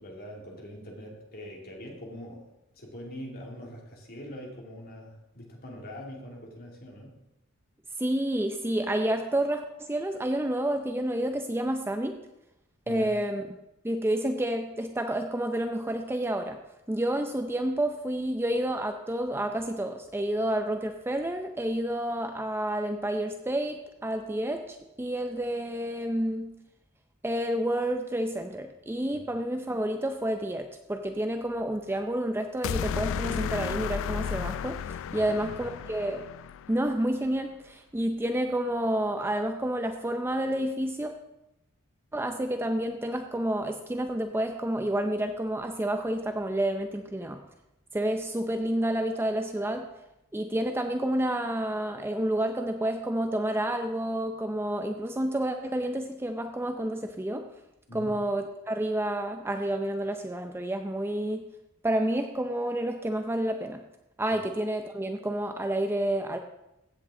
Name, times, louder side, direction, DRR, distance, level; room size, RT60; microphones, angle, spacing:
voice 1, 0.0-2.4 2.7-7.2 12.9-13.1 29.1-29.3 35.1-35.6 57.9-58.2 64.3-64.4, equal, 45° left, -1 dB, 2.6 m, -43 dB
voice 2, 8.0-12.2 12.9-13.4 13.8-16.6 16.9-26.5 27.2-36.2 36.7-41.1 42.1-47.4 47.9-49.9 50.3-57.5 57.9-61.5 61.8-63.8 64.2-66.4, right 1 dB, 10° right, 6 dB, 0.5 m, -29 dB
sound 1, 32.6-36.9, left 7 dB, 65° left, 0.3 m, -33 dB
15.5 x 7.9 x 3.7 m, 0.91 s
head